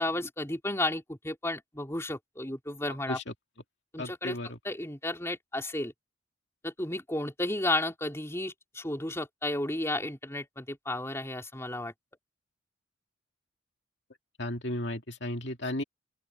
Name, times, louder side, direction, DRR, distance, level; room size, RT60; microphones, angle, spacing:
voice 1, 0.0-3.2 3.9-4.4 4.6-5.9 6.6-11.9, left 1 dB, 15° left, 3.2 m, -33 dB
voice 2, 4.0-4.6 14.4-15.8, left 1 dB, 60° left, 2.3 m, -34 dB
open air
head